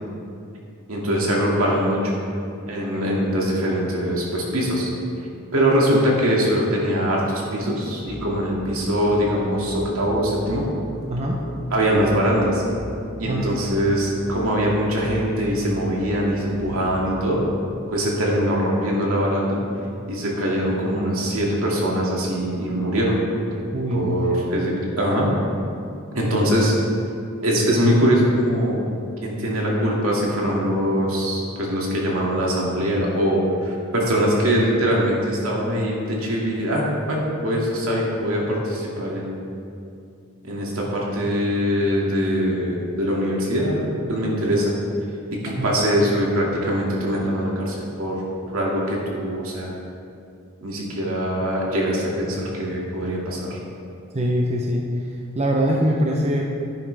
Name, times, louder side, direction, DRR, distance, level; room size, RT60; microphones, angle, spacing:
voice 1, 0.9-2.1 2.7-4.9 5.5-10.6 11.7-12.6 13.2-17.4 17.9-19.6 20.1-23.2 23.9-25.3 26.1-26.7 27.4-28.8 29.2-39.4 40.4-44.7 45.3-48.2 48.5-49.7 50.6-53.6, equal, 75° right, -3 dB, 2.2 m, -22 dB
Musical instrument, 8.1-17.3, equal, 45° right, 1.6 m, -37 dB
voice 2, 11.1-11.4 13.2-13.4 23.7-24.4 45.4-45.7 54.1-55.1 55.3-56.5, equal, 30° right, -1 dB, 0.7 m, -23 dB
11.0 x 9.9 x 3.4 m, 2.5 s
head